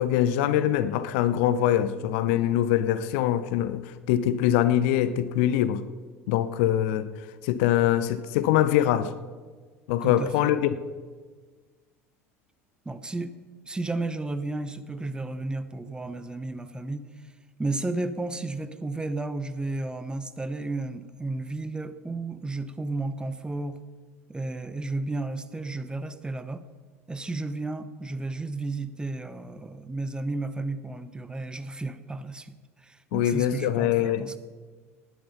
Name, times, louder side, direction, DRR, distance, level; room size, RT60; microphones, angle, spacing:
voice 1, 0.0-5.8 6.3-7.1 7.4-9.1 9.9-10.7 33.1-34.2, left 11 dB, 55° left, 14 dB, 0.7 m, -23 dB
voice 2, 10.0-10.5 12.8-13.3 13.6-17.3 17.6-23.8 24.3-26.7 27.1-34.4, right 2 dB, 10° right, 12 dB, 0.9 m, -33 dB
19.0 x 9.6 x 5.7 m, 1.5 s
figure-of-eight pair, 70°, 8 cm